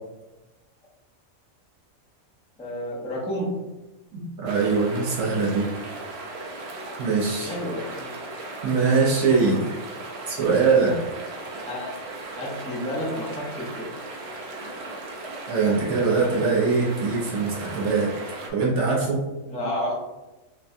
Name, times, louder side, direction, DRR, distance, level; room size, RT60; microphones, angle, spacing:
voice 1, 2.6-3.5 7.4-8.1 11.7-11.9 12.4-13.9 19.5-19.9, equal, 10° left, -4 dB, 0.4 m, -30 dB
voice 2, 4.1-5.6 7.0-7.6 8.6-9.6 10.3-11.0 15.5-18.1 18.5-19.2, right 4 dB, 90° right, -4 dB, 1.2 m, -22 dB
sound 1, 4.5-18.5, right 2 dB, 60° right, 0.8 m, -37 dB
4.4 x 2.3 x 2.6 m, 1.1 s
omnidirectional pair, 1.4 m